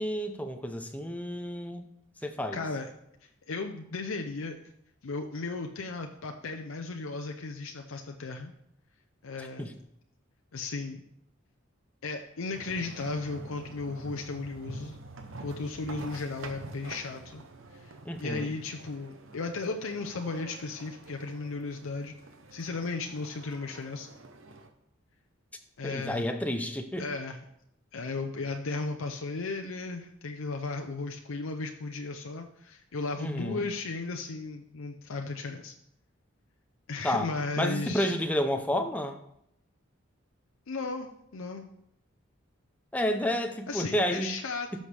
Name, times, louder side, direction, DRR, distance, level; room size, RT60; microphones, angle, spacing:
voice 1, 0.0-1.9 2.2-2.6 9.4-9.7 18.0-18.5 25.8-27.1 33.2-33.7 37.0-37.3 37.6-39.2 42.9-44.3, equal, 5° left, 6 dB, 0.6 m, -30 dB
voice 2, 2.5-2.9 3.5-4.6 5.0-8.5 9.2-9.7 10.5-11.0 12.0-15.0 15.4-17.4 17.7-22.1 22.5-24.1 25.8-26.3 27.0-27.4 27.9-35.7 36.9-38.1 40.7-41.7 43.7-44.8, left 3 dB, 90° left, 4 dB, 0.6 m, -35 dB
sound 1, 12.5-24.7, right 2 dB, 75° right, 0.9 m, -47 dB
12.5 x 6.4 x 3.4 m, 0.76 s
head